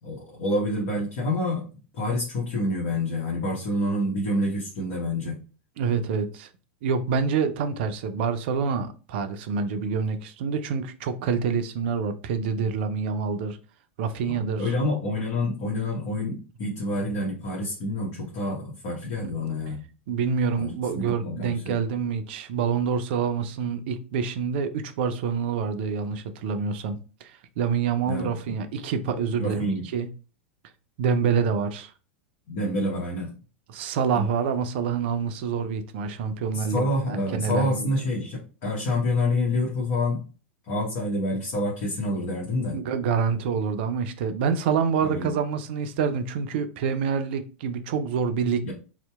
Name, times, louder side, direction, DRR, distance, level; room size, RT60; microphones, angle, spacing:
voice 1, 0.0-1.6 1.9-5.4 14.2-19.8 20.6-21.8 28.1-28.5 29.4-29.9 32.5-33.3 34.1-34.2 36.5-40.2 40.7-42.8 45.0-45.3 48.6-48.7, left 1 dB, 50° left, 0.9 m, -28 dB
voice 2, 5.8-6.5 6.8-13.6 14.0-14.7 20.1-29.7 29.9-30.1 31.0-31.9 33.7-37.9 42.7-48.7, right 6 dB, 60° right, 0.4 m, -27 dB
2.7 x 2.1 x 2.2 m
hypercardioid pair, 95°, 7 cm